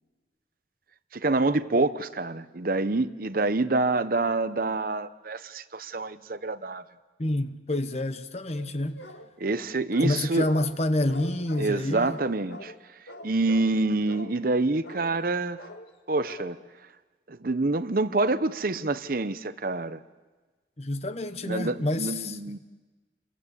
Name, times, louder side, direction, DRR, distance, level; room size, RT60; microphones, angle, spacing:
voice 1, 1.1-6.8 9.4-10.5 11.6-15.6 16.1-16.6 17.3-20.0 21.4-22.6, right 2 dB, 50° right, 0.8 m, -27 dB
voice 2, 7.2-9.0 10.0-12.2 20.8-22.6, left 1 dB, 35° left, 1.1 m, -28 dB
sound 1, 8.5-9.3 9.9-10.8 11.1-11.8 12.1-12.8 13.1-13.8 14.1-14.4 14.8-15.2 15.6-15.9 16.3-16.6, left 1 dB, 70° left, 1.8 m, -43 dB
29.0 x 22.0 x 8.3 m
head